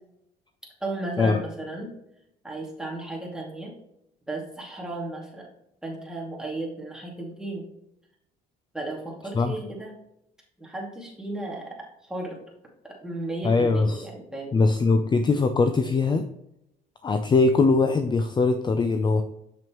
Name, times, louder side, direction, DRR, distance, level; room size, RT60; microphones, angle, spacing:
voice 1, 0.8-1.9 2.4-3.7 4.3-5.5 5.8-7.6 8.7-9.9 10.6-11.7 12.0-12.4 12.8-14.7, right 2 dB, 5° right, -3 dB, 2.4 m, -34 dB
voice 2, 13.4-14.1 14.5-16.3 17.0-19.2, left 3 dB, 25° left, 8 dB, 0.5 m, -21 dB
7.0 x 6.1 x 3.1 m, 0.81 s
cardioid pair, 110°, 17 cm